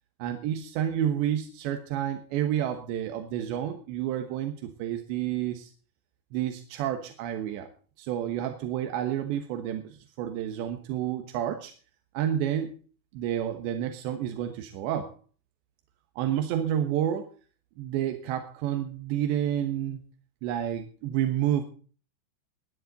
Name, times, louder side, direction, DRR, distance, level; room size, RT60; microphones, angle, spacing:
voice 1, 0.2-5.7 6.3-7.7 8.0-11.7 12.2-12.8 13.1-15.1 16.2-17.3 17.8-20.0 20.4-21.6, right 10 dB, 85° right, 6 dB, 3.5 m, -30 dB
19.5 x 11.0 x 4.1 m, 0.40 s
omnidirectional pair, 5.0 m